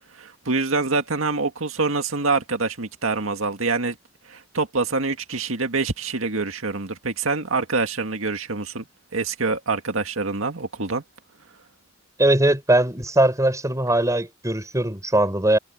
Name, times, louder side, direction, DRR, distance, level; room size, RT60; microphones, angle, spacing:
voice 1, 0.1-4.0 4.3-8.8 9.1-11.0, right 3 dB, 85° right, 2.0 m, -25 dB
voice 2, 12.2-15.6, right 1 dB, 15° right, 5.3 m, -20 dB
head